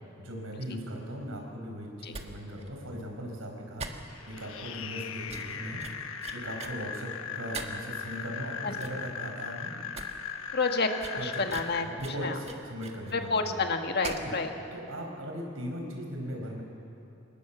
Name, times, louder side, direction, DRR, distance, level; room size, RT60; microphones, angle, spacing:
voice 1, 0.2-3.9 4.3-5.8 6.3-9.7 11.1-11.4 11.8-13.6 14.1-14.4 14.7-16.6, equal, 85° right, 1 dB, 4.9 m, -38 dB
sound 1, 2.1-2.3 2.6-2.7 3.0-3.1 3.8-4.4 4.7-4.9 5.3-6.7 7.5-7.9 8.4-8.5 8.8-9.1 9.4-9.5 9.8-10.1 10.3-10.4 11.0-13.1 14.0-14.3 14.6-14.7, right 4 dB, 30° right, 1.5 m, -41 dB
sound 2, 4.1-11.8, left 7 dB, 75° left, 1.2 m, -39 dB
voice 2, 10.5-10.9 11.2-11.9 12.2-12.4 13.1-14.5, left 4 dB, 50° left, 4 dB, 1.7 m, -29 dB
25.0 x 19.5 x 7.3 m, 2.8 s
head